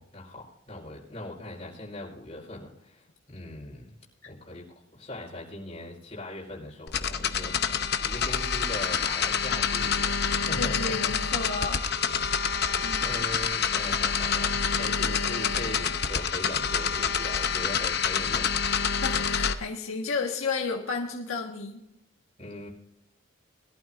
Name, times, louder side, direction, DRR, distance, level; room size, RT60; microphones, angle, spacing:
voice 1, 0.0-3.9 4.2-4.6 4.9-11.1 11.8-12.1 12.7-18.6 22.4-22.7, left 1 dB, 30° left, -3 dB, 4.8 m, -40 dB
sound 1, 6.9-19.5, left 6 dB, 50° left, 0.8 m, -27 dB
voice 2, 10.5-11.8 12.8-13.1 19.0-21.8, left 4 dB, 80° left, 0 dB, 1.6 m, -32 dB
21.5 x 12.0 x 2.6 m, 0.81 s
head